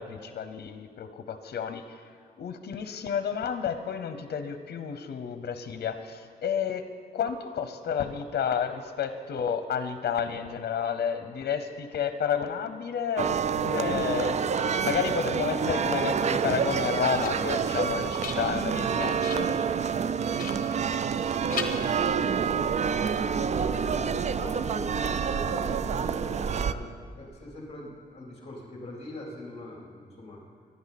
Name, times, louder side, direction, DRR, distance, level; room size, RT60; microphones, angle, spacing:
voice 1, 0.0-2.0 2.4-6.8 7.1-19.5, left 7 dB, 80° left, 9 dB, 0.9 m, -31 dB
sound 1, 13.2-26.7, right 6 dB, 45° right, 0.4 m, -28 dB
sound 2, 16.8-17.6 18.0-18.8 19.2-19.6 20.4-21.2 21.5-22.5, left 5 dB, 55° left, 1.3 m, -38 dB
voice 2, 21.3-22.9 23.5-24.9 25.2-30.4, left 1 dB, 40° left, -3 dB, 3.4 m, -42 dB
24.0 x 11.0 x 4.2 m, 2.2 s
wide cardioid pair, 145°, 17 cm